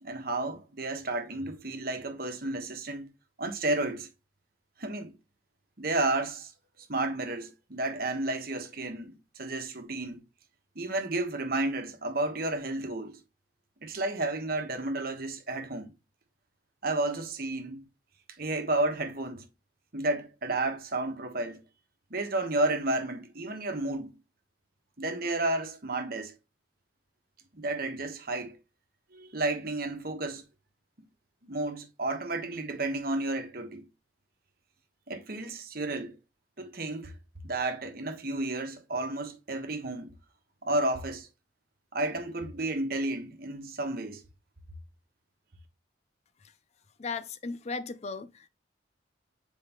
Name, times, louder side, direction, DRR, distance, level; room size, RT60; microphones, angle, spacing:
voice 1, 0.0-3.1 3.4-4.1 4.8-5.1 5.8-6.5 6.9-10.2 10.7-13.2 13.8-15.9 16.8-17.8 18.4-19.5 19.9-21.6 22.1-24.1 25.0-26.3 27.5-28.6 29.1-30.4 31.4-33.9 35.1-36.1 36.6-37.1 37.4-40.1 40.6-41.3 41.9-44.2, right 2 dB, 50° right, 1.3 m, -32 dB
voice 2, 47.0-48.5, left 4 dB, 35° left, 0.4 m, -36 dB
7.6 x 4.7 x 3.0 m
head